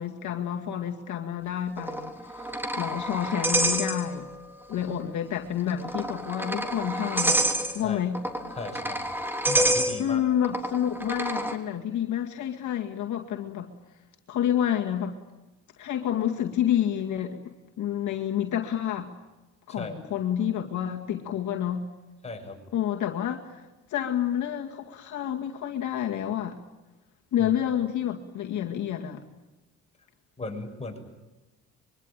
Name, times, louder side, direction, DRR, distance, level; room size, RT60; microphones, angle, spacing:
voice 1, 0.0-4.3 4.7-7.4 7.7-8.2 10.0-13.7 14.3-15.2 15.8-17.4 17.8-19.1 19.7-21.8 22.7-23.6 23.9-26.6 27.3-29.2, left 10 dB, 75° left, 2 dB, 2.2 m, -29 dB
sound 1, 1.8-4.4 4.7-4.8 5.7-11.6, right 1 dB, 5° right, 3.3 m, -28 dB
voice 2, 8.6-9.1 9.5-10.2 19.7-19.9 22.2-22.6 27.4-27.5 30.4-31.0, left 3 dB, 20° left, 2 dB, 7.7 m, -36 dB
25.0 x 23.5 x 9.1 m, 1.1 s
cardioid pair, 90°, 30 cm